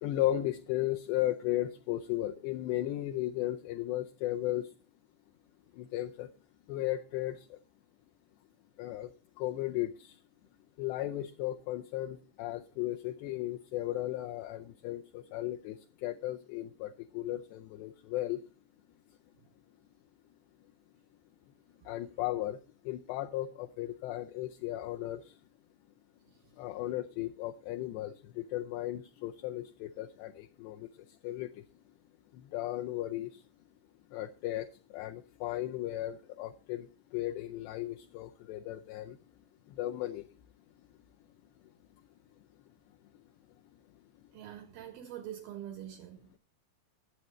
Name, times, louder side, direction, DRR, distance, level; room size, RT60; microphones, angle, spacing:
voice 1, 0.0-4.7 5.7-6.3 6.7-7.6 8.8-10.2 10.8-18.4 21.9-25.4 26.5-31.7 32.3-33.4 34.1-39.2 39.7-40.3, left 14 dB, 80° left, 2.5 m, -36 dB
voice 2, 44.3-46.4, right 11 dB, 85° right, 2.1 m, -45 dB
20.0 x 8.1 x 3.1 m
omnidirectional pair, 5.4 m